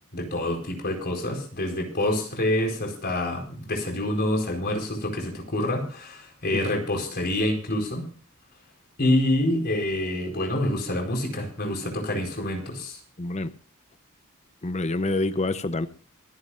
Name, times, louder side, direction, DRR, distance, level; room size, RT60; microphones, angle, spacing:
voice 1, 0.1-8.0 9.0-13.0, left 1 dB, 45° left, 4.7 m, -27 dB
voice 2, 13.2-13.5 14.6-15.9, left 2 dB, 30° left, 0.7 m, -26 dB
25.5 x 10.5 x 2.6 m
head